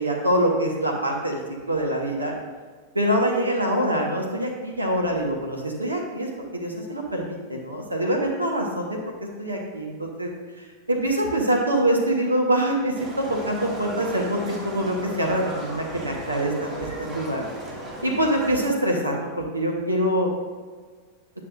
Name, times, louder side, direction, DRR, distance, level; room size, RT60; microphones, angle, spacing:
voice 1, 0.0-1.4 1.7-2.3 2.9-9.0 9.4-10.3 10.6-17.5 18.0-20.3, right 1 dB, 80° right, 0 dB, 1.3 m, -25 dB
Livestock farm animals working animals, 12.9-18.7, right 1 dB, 25° right, 2.3 m, -36 dB
9.8 x 5.8 x 2.6 m, 1.5 s
figure-of-eight pair, 90°, 0 cm